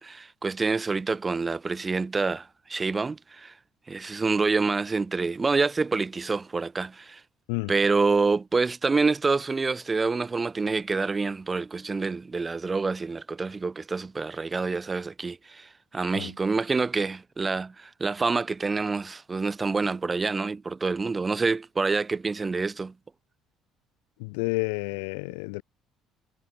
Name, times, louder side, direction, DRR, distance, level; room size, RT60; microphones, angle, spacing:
voice 1, 0.0-3.5 3.9-7.2 7.7-22.9, right 4 dB, 25° right, 0.8 m, -27 dB
voice 2, 24.2-25.6, left 33 dB, 70° left, 2.7 m, -30 dB
figure-of-eight pair, 55°, 0 cm